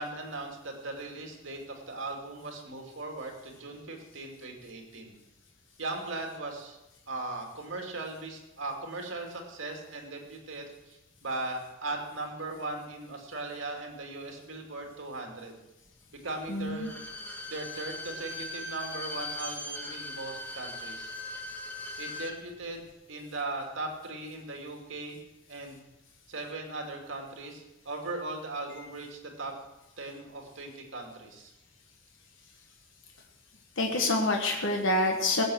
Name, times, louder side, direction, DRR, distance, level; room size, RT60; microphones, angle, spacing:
voice 1, 0.0-5.1 5.8-6.8 7.1-15.6 16.1-21.1 22.0-25.2 25.5-25.8 26.3-29.6 30.0-31.5, right 2 dB, 70° right, 2 dB, 2.5 m, -38 dB
voice 2, 16.5-16.9 33.8-35.4, left 2 dB, 70° left, 1 dB, 1.4 m, -27 dB
Bowed string instrument, 16.7-22.4 22.7-22.8, left 1 dB, 10° left, 1.4 m, -39 dB
17.5 x 7.6 x 6.3 m, 0.98 s
head